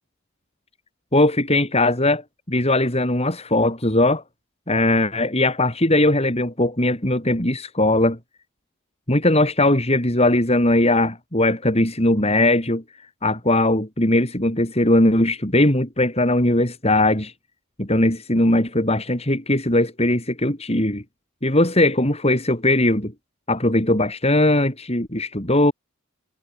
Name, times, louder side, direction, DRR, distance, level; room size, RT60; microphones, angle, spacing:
voice 1, 1.1-2.2 2.5-4.2 4.7-8.2 9.1-12.8 13.2-17.3 17.8-21.0 21.4-23.1 23.5-25.7, left 1 dB, 30° left, 5.5 m, -19 dB
head